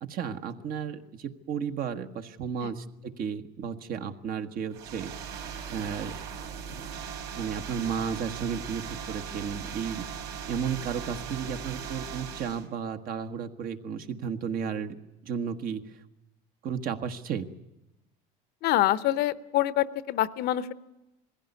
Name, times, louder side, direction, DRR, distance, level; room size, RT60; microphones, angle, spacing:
voice 1, 0.0-5.1 5.7-6.1 7.4-10.0 10.5-15.0 15.2-16.0 16.6-17.5, right 7 dB, 50° right, 7 dB, 1.4 m, -33 dB
sound 1, 4.7-12.7, right 7 dB, 70° right, 3.9 m, -38 dB
voice 2, 18.6-20.7, left 14 dB, 60° left, 15 dB, 0.9 m, -26 dB
20.5 x 16.0 x 9.6 m, 0.98 s
cardioid pair, 125°, 18 cm